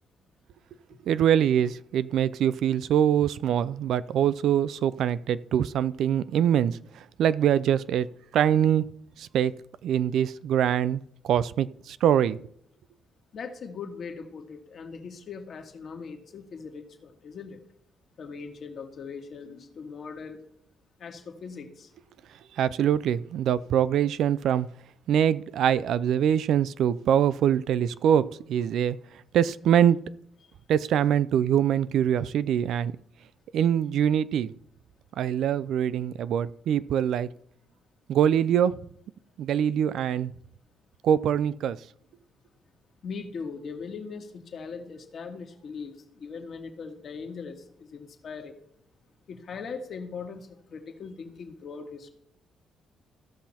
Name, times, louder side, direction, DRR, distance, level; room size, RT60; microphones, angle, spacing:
voice 1, 1.1-8.1 8.3-8.8 9.2-9.5 9.8-12.4 22.6-24.7 25.1-28.2 28.5-29.0 29.3-30.0 30.7-32.9 33.5-34.5 35.2-37.3 38.1-38.8 39.4-40.3 41.0-41.8, right 9 dB, 75° right, 17 dB, 0.4 m, -24 dB
voice 2, 13.3-17.6 18.2-20.4 21.0-21.9 43.0-48.6 49.3-52.1, left 5 dB, 55° left, 4 dB, 1.7 m, -40 dB
15.5 x 5.8 x 4.3 m, 0.71 s
cardioid pair, 90°, 0 cm